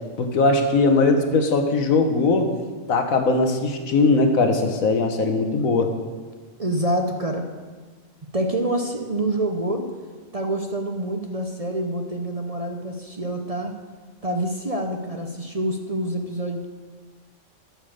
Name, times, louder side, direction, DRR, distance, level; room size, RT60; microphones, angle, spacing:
voice 1, 0.2-2.5 2.9-5.9, left 3 dB, 90° left, 5 dB, 1.5 m, -20 dB
voice 2, 6.6-7.4 8.3-9.9 10.3-13.7 14.2-16.7, right 1 dB, 35° right, 4 dB, 0.7 m, -26 dB
11.0 x 7.1 x 6.5 m, 1.4 s
omnidirectional pair, 1.4 m